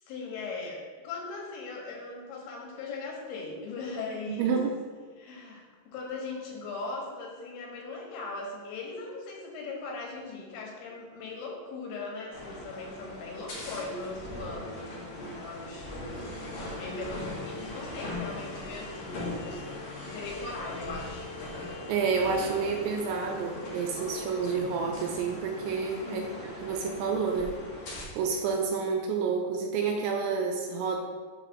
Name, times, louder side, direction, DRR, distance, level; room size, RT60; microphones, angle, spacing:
voice 1, 0.0-4.6 5.2-16.3 16.6-19.6 20.0-21.3 26.0-26.4, left 3 dB, 80° left, -2 dB, 3.9 m, -39 dB
voice 2, 4.3-4.8 21.9-27.6 28.2-31.0, right 5 dB, 85° right, 2 dB, 2.7 m, -29 dB
sound 1, 12.3-28.0, left 2 dB, 55° left, 1.9 m, -40 dB
7.7 x 4.9 x 6.2 m, 1.5 s
omnidirectional pair, 5.8 m